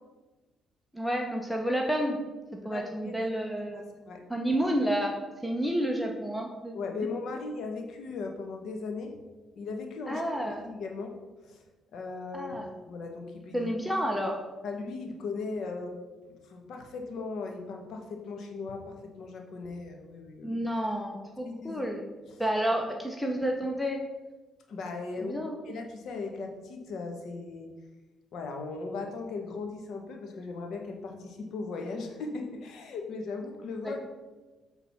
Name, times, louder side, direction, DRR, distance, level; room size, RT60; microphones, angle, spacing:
voice 1, 0.9-2.2 2.6-3.9 4.3-5.2 5.4-6.7 10.1-10.7 12.3-12.7 13.5-14.4 20.4-22.0 22.4-24.0 25.2-25.6 33.8-34.0, equal, 5° left, 1 dB, 0.8 m, -30 dB
voice 2, 2.7-3.2 3.6-4.2 6.7-9.2 9.6-11.1 11.4-11.6 11.9-13.7 14.6-16.0 16.3-20.6 21.4-21.8 24.7-25.4 25.7-27.7 28.3-34.0, left 4 dB, 70° left, 3 dB, 1.3 m, -38 dB
7.1 x 4.0 x 5.9 m, 1.2 s
cardioid pair, 90°, 0 cm